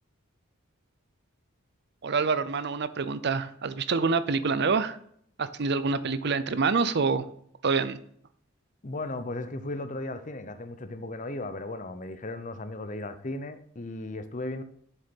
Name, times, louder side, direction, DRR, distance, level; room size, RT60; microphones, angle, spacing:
voice 1, 2.0-5.0 5.4-7.3 7.6-8.0, right 4 dB, 50° right, 13 dB, 0.5 m, -26 dB
voice 2, 8.8-14.6, left 2 dB, 35° left, 10 dB, 0.7 m, -36 dB
7.2 x 6.9 x 5.3 m, 0.65 s
head